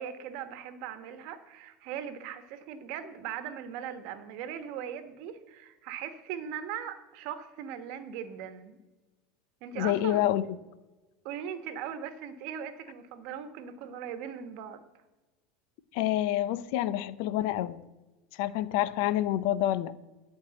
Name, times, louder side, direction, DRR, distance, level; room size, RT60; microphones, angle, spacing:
voice 1, 0.0-8.8 9.6-10.2 11.2-14.8, right 8 dB, 65° right, 9 dB, 1.1 m, -39 dB
voice 2, 9.7-10.4 15.9-17.8 18.3-19.9, left 13 dB, 70° left, 16 dB, 0.6 m, -28 dB
11.5 x 4.6 x 7.7 m, 1.1 s
supercardioid pair, 125°, 0 cm